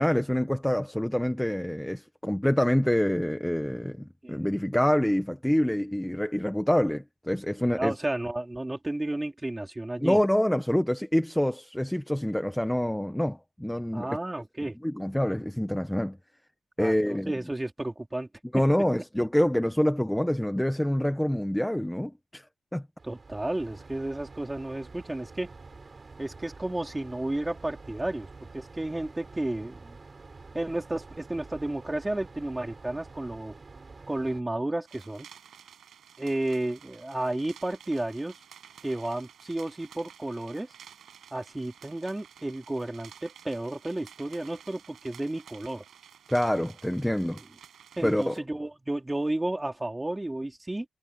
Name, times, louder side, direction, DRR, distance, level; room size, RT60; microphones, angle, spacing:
voice 1, 0.0-7.9 10.0-14.2 14.8-16.2 16.8-17.3 18.5-22.4 22.7-22.8 46.3-47.4 48.0-48.4, equal, 5° left, 1.1 m, -26 dB
voice 2, 7.8-10.2 13.9-14.8 16.8-18.3 23.0-25.5 26.2-28.3 28.5-30.0 30.5-33.5 34.1-35.3 36.2-38.4 38.8-40.7 41.3-45.8 48.0-50.9, right 1 dB, 10° right, 3.9 m, -32 dB
sound 1, 23.0-34.4, right 3 dB, 30° right, 4.3 m, -48 dB
sound 2, 34.9-48.4, right 8 dB, 75° right, 6.5 m, -52 dB
wide cardioid pair, 140°, 0 cm